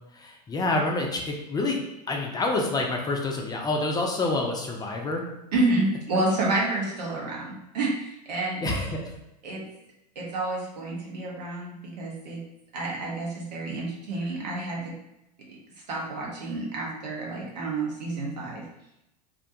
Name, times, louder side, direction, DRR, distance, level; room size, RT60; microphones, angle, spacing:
voice 1, 0.1-1.8 2.1-5.2 8.6-9.1, left 2 dB, 20° left, 1 dB, 0.4 m, -27 dB
voice 2, 5.5-8.6 9.4-9.6 10.2-12.4 12.7-14.8 15.9-18.6, right 2 dB, 80° right, -3 dB, 0.8 m, -29 dB
2.4 x 2.2 x 2.7 m, 0.86 s
hypercardioid pair, 90°, 21 cm